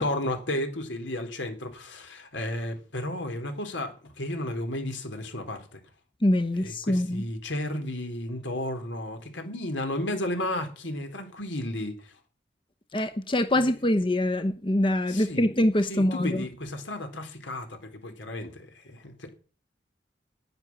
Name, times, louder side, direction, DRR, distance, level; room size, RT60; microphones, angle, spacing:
voice 1, 0.0-5.8 6.6-12.1 15.1-15.5 15.9-19.3, left 1 dB, 90° left, 3.7 m, -33 dB
voice 2, 6.2-7.2 12.9-16.4, left 1 dB, 25° left, 0.8 m, -24 dB
10.5 x 9.8 x 9.7 m
head